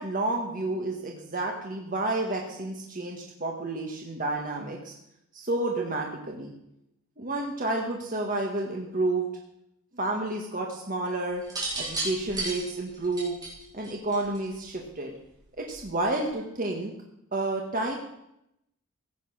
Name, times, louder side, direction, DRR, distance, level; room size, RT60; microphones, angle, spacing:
voice 1, 0.0-4.9 5.3-6.5 7.2-9.3 9.9-11.4 11.7-13.4 13.7-15.1 15.6-16.9 17.3-18.0, right 2 dB, 40° right, 0 dB, 1.8 m, -30 dB
sound 1, 11.4-14.6 15.7-16.0, right 2 dB, 20° right, 4.6 m, -33 dB
16.0 x 8.3 x 6.4 m, 0.80 s
head